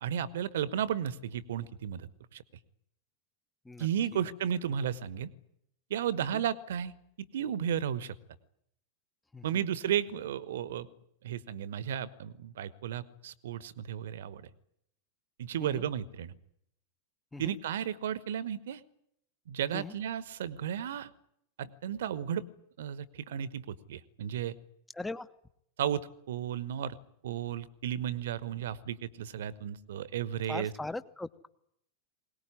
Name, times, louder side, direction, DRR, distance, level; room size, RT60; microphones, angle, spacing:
voice 1, 0.0-2.4 3.8-5.3 5.9-6.9 7.3-8.1 9.4-10.9 11.2-14.5 15.4-16.3 17.4-18.8 19.5-21.1 21.6-22.4 22.8-24.5 25.8-26.0 26.3-27.0 27.2-30.7, right 9 dB, 60° right, 18 dB, 1.1 m, -34 dB
voice 2, 24.9-25.3 30.5-31.5, left 2 dB, 5° left, 16 dB, 0.9 m, -39 dB
21.5 x 19.0 x 10.0 m, 0.76 s
figure-of-eight pair, 90°, 0 cm